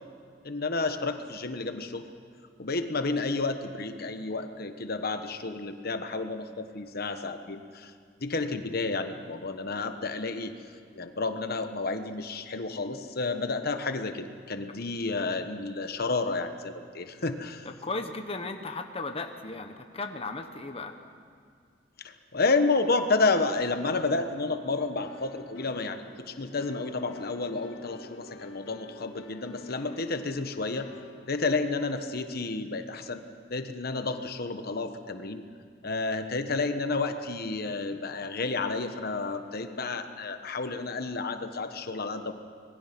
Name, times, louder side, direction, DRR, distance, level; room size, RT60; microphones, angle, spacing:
voice 1, 0.4-2.0 2.6-7.9 8.2-10.5 10.9-17.7 22.0-30.9 31.3-33.2 33.5-35.4 35.8-42.3, left 3 dB, 55° left, 8 dB, 1.2 m, -30 dB
voice 2, 17.8-21.0, left 3 dB, 30° left, 5 dB, 1.1 m, -36 dB
sound 1, 23.5-31.8, left 2 dB, 85° left, 1.9 m, -50 dB
26.0 x 20.5 x 6.1 m, 2.2 s
head